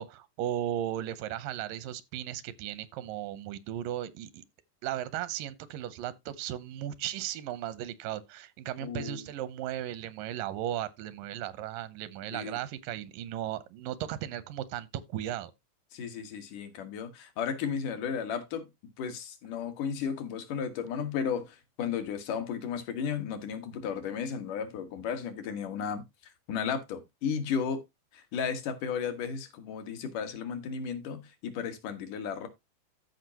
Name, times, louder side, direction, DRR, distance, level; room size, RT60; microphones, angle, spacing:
voice 1, 0.0-4.4 4.8-15.5, right 12 dB, 90° right, 2.5 m, -36 dB
voice 2, 8.8-9.3 12.3-12.6 15.9-18.7 19.0-27.8 28.1-32.5, left 7 dB, 75° left, 3.0 m, -34 dB
14.0 x 5.1 x 2.8 m
omnidirectional pair, 3.8 m